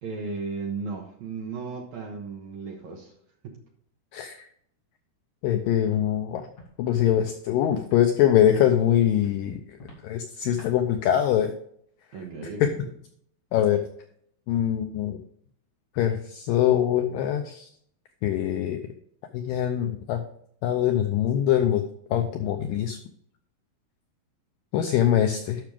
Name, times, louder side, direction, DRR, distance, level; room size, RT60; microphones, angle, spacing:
voice 1, 0.0-3.1 3.4-3.6 12.1-12.8, right 4 dB, 70° right, 2 dB, 1.8 m, -35 dB
voice 2, 4.1-4.5 5.4-6.5 6.8-9.6 10.0-11.5 12.6-12.7 13.5-13.8 14.5-15.2 16.0-17.7 18.2-18.8 19.3-20.2 20.6-21.8 22.1-23.0 24.7-25.6, left 10 dB, 90° left, 6 dB, 1.9 m, -23 dB
Walk footsteps, 5.8-6.0 6.5-6.7 7.1-7.3 7.8-8.0 8.5-8.7 9.2-9.3 9.8-10.0 10.5-10.7, left 2 dB, 40° left, 3.1 m, -47 dB
12.0 x 5.9 x 3.6 m, 0.66 s
omnidirectional pair, 4.7 m